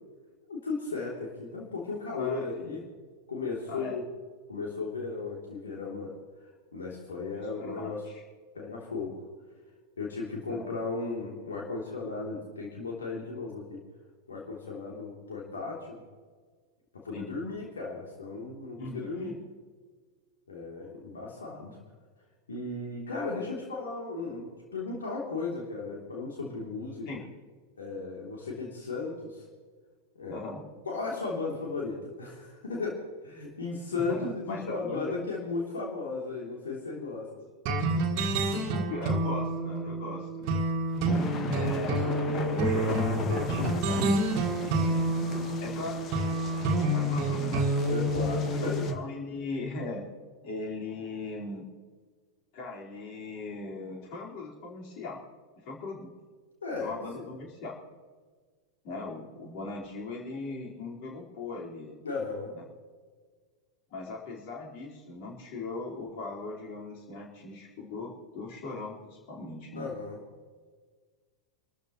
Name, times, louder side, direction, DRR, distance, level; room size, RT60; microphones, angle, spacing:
voice 1, 0.5-2.8 3.3-4.0 4.5-6.2 6.7-8.1 8.5-9.2 10.0-13.8 14.3-16.0 16.9-19.3 20.5-21.8 22.5-27.1 27.8-29.4 30.1-30.4 30.8-37.3 47.9-48.8 56.6-57.3 62.0-62.5 69.7-70.2, left 3 dB, 70° left, -3 dB, 3.2 m, -35 dB
voice 2, 2.2-2.8 3.7-4.0 7.5-7.9 10.5-10.8 17.1-17.3 18.8-19.4 27.0-27.2 30.3-30.6 34.1-35.1 38.5-40.5 41.5-44.1 44.8-45.0 45.6-47.7 48.6-50.0 50.4-51.7 52.5-55.2 55.6-56.1 56.8-57.8 58.8-62.0 62.5-62.6 63.9-69.9, left 3 dB, 45° left, -3 dB, 4.5 m, -39 dB
sound 1, 37.7-48.9, right 1 dB, 45° right, 1.7 m, -28 dB
sound 2, 40.9-48.9, left 6 dB, 30° left, 1.6 m, -39 dB
27.5 x 13.5 x 3.1 m, 1.5 s
figure-of-eight pair, 90°, 0 cm